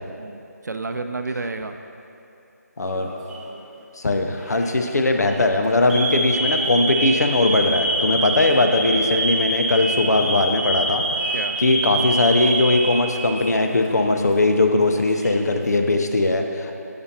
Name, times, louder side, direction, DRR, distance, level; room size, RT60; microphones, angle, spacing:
voice 1, 0.2-1.7 11.3-11.6, right 3 dB, 75° right, 7 dB, 0.5 m, -30 dB
voice 2, 2.8-3.1 4.0-16.8, left 2 dB, 70° left, 4 dB, 0.6 m, -20 dB
Alarm, 3.0-3.5 4.4-4.7 5.1-5.3 5.9-13.4 13.7-13.9 14.8-15.5, right 2 dB, 5° right, 0.3 m, -25 dB
6.8 x 6.8 x 2.8 m, 2.8 s
figure-of-eight pair, 160°, 9 cm